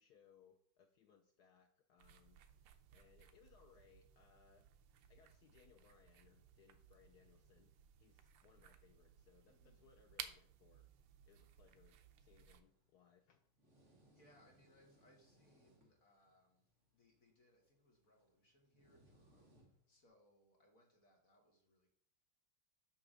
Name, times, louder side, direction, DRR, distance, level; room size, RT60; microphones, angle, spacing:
voice 1, 0.0-2.4 2.9-4.7 5.1-7.7 8.0-10.9 11.3-13.5, left 7 dB, 80° left, 5 dB, 0.9 m, -69 dB
sound 1, 2.0-12.6, right 9 dB, 85° right, 1.5 m, -58 dB
voice 2, 9.5-9.9 14.1-16.7 16.9-21.9, left 1 dB, 45° left, 1 dB, 1.5 m, -72 dB
sound 2, 12.6-20.1, right 1 dB, 35° right, 1.7 m, -72 dB
8.7 x 2.9 x 6.2 m, 0.65 s
omnidirectional pair, 2.4 m